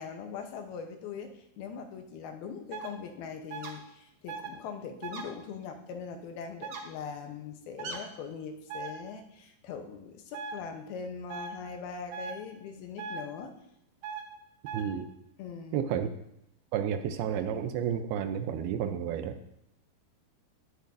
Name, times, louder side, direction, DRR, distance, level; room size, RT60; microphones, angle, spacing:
voice 1, 0.0-13.6 15.4-15.9, left 6 dB, 80° left, 5 dB, 2.7 m, -41 dB
sound 1, 2.7-2.9 3.5-3.7 4.3-4.5 5.0-5.2 6.6-6.8 7.8-8.0 8.7-8.9 10.3-10.5 11.3-11.5 12.1-12.3 13.0-13.2 14.0-14.2 14.7-14.8, right 5 dB, 65° right, 1.6 m, -38 dB
voice 2, 14.7-15.1 15.7-16.1 16.7-19.4, right 8 dB, 80° right, 9 dB, 2.5 m, -31 dB
19.5 x 6.9 x 2.6 m, 0.79 s
omnidirectional pair, 4.6 m